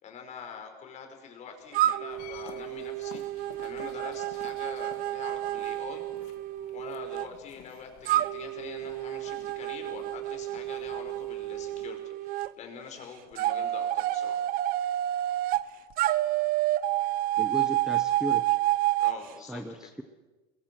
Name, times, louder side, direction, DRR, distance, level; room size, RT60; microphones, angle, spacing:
voice 1, 0.0-6.0 6.7-14.5 19.0-19.6, left 6 dB, 40° left, 5 dB, 5.0 m, -44 dB
sound 1, 1.7-7.3 8.1-12.5 13.4-15.6 16.0-19.2, right 14 dB, 55° right, 0.9 m, -29 dB
sound 2, 2.1-11.9, left 11 dB, 70° left, 2.0 m, -53 dB
voice 2, 17.4-18.6 19.4-20.0, right 1 dB, 5° right, 7 dB, 1.1 m, -36 dB
28.0 x 21.5 x 6.2 m, 1.1 s
cardioid pair, 140°, 18 cm